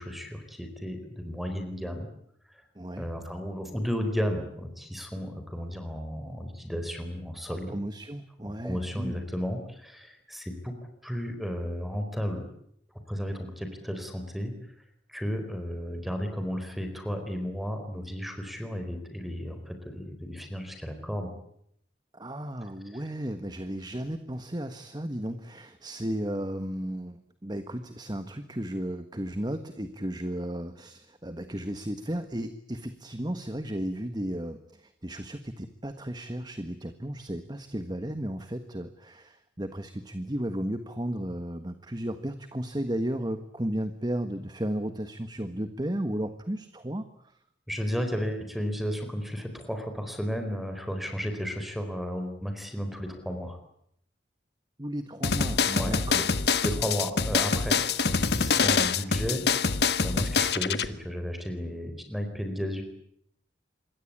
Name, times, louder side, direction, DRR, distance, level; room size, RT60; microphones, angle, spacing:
voice 1, 0.0-2.1 2.5-2.6 3.0-7.7 8.6-10.7 11.0-12.5 13.1-14.5 15.1-21.3 22.9-23.0 47.7-53.6 55.7-56.3 56.6-62.8, equal, ahead, 6 dB, 4.3 m, -33 dB
voice 2, 2.7-3.1 7.7-9.2 22.1-47.3 54.8-56.3, right 1 dB, 25° right, 9 dB, 1.5 m, -34 dB
sound 1, 55.2-60.9, left 5 dB, 65° left, 1.4 m, -25 dB
27.0 x 22.0 x 8.7 m, 0.71 s
head